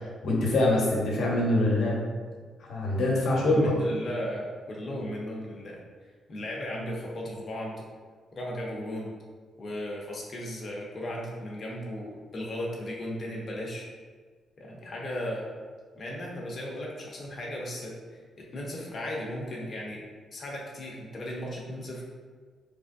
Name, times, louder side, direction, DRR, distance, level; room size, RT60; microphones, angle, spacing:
voice 1, 0.2-2.0 2.7-3.7, left 1 dB, 60° left, -2 dB, 1.0 m, -24 dB
voice 2, 3.5-5.8 6.3-7.7 8.3-9.1 9.6-13.9 14.6-15.5 15.9-18.2 18.5-20.0 20.3-22.0, left 1 dB, 35° left, -2 dB, 0.8 m, -36 dB
5.0 x 3.4 x 2.5 m, 1.5 s
cardioid pair, 175°, 0 cm